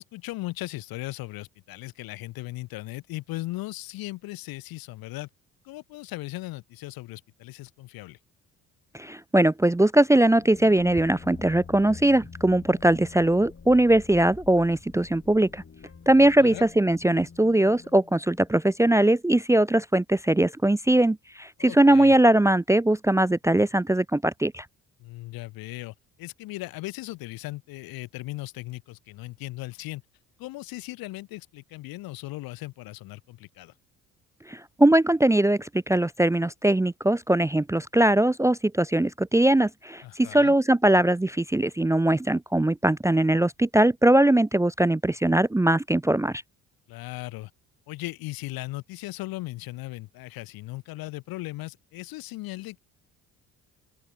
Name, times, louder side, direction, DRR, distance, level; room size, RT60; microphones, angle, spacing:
voice 1, 0.0-5.3 5.6-8.2 16.4-16.6 21.6-22.2 25.0-30.0 30.4-33.7 40.0-40.5 46.9-47.5 47.9-52.8, left 19 dB, 75° left, 2.7 m, -37 dB
voice 2, 8.9-15.6 16.1-24.6 34.5-46.4, right 1 dB, 10° right, 0.6 m, -21 dB
sound 1, 10.2-18.8, left 5 dB, 40° left, 6.7 m, -46 dB
open air
hypercardioid pair, 55°, 36 cm